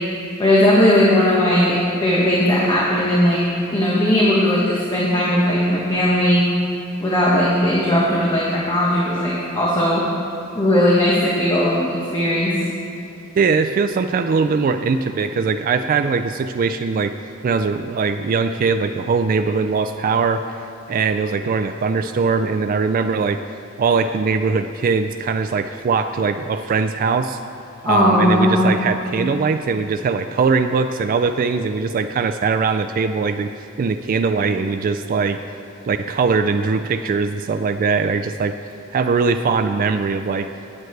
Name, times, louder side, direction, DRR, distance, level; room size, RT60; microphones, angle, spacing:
voice 1, 0.4-1.7 2.0-3.4 3.7-6.4 7.0-10.0 10.5-12.5 27.8-28.7, left 1 dB, 20° left, -6 dB, 1.4 m, -17 dB
voice 2, 13.4-17.1 17.4-20.4 20.9-23.4 23.8-27.4 27.8-33.5 33.8-35.4 35.9-38.6 38.9-40.5, right 5 dB, 40° right, 8 dB, 0.3 m, -21 dB
18.5 x 7.9 x 3.3 m, 2.8 s
head